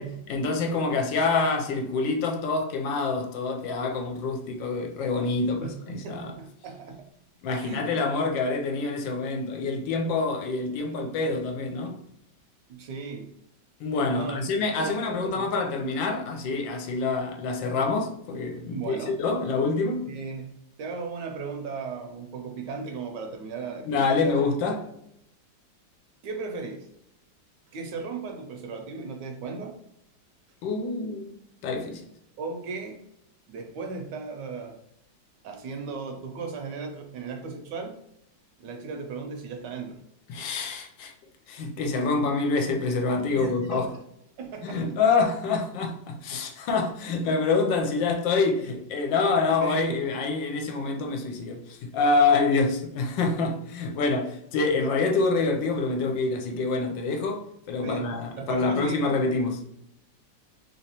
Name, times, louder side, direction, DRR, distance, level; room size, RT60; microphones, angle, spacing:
voice 1, 0.3-5.7 6.1-6.3 7.4-12.0 13.8-20.1 23.9-24.9 30.6-31.4 31.6-32.1 40.3-41.1 41.5-43.9 44.6-59.7, left 3 dB, 80° left, 1.3 m, -26 dB
voice 2, 5.6-7.0 7.5-8.0 12.7-13.3 14.1-14.4 14.7-15.5 18.7-19.2 20.1-20.5 20.8-24.4 26.2-26.9 27.7-29.8 32.4-33.0 33.5-34.8 35.4-38.0 38.6-40.0 43.3-44.0 44.4-44.8 49.6-50.1 57.8-59.0, right 4 dB, 75° right, 1.1 m, -36 dB
3.2 x 2.9 x 2.8 m
omnidirectional pair, 2.1 m